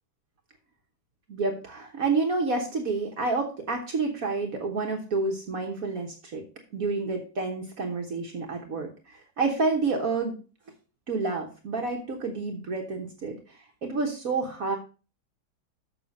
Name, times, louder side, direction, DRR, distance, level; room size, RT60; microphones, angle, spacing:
voice 1, 1.3-6.4 6.7-10.3 11.1-14.8, right 3 dB, 55° right, 2 dB, 1.5 m, -29 dB
6.8 x 6.7 x 5.3 m, 0.35 s
omnidirectional pair, 1.8 m